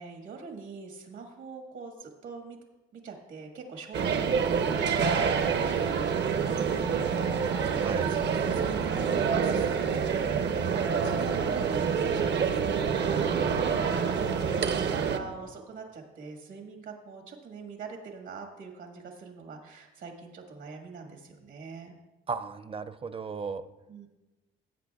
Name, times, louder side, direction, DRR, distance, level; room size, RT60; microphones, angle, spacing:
voice 1, 0.0-2.6 2.9-21.9 23.9-24.1, right 4 dB, 75° right, 2 dB, 1.5 m, -44 dB
sound 1, 3.9-15.2, right 6 dB, 60° right, 0.7 m, -27 dB
voice 2, 22.3-23.6, right 5 dB, 30° right, 12 dB, 0.5 m, -35 dB
17.0 x 8.1 x 2.3 m, 1.0 s
cardioid pair, 90°, 20 cm